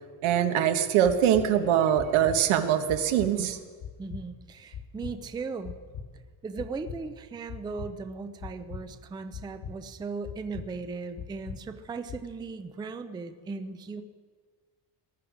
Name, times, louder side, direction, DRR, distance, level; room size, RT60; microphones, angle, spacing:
voice 1, 0.2-3.6, right 10 dB, 90° right, 7 dB, 1.4 m, -23 dB
sound 1, 1.0-1.5 2.0-2.4 2.9-3.3 3.8-4.2 4.7-5.1 5.6-6.1 6.6-7.0 7.5-7.9 8.4-8.8 9.3-9.7 10.2-10.7 11.2-11.6 12.1-12.2, left 7 dB, 55° left, 2.0 m, -39 dB
voice 2, 4.0-5.7 6.4-14.0, right 4 dB, 10° right, 9 dB, 0.3 m, -37 dB
19.0 x 13.0 x 5.0 m, 1.5 s
cardioid pair, 175°, 47 cm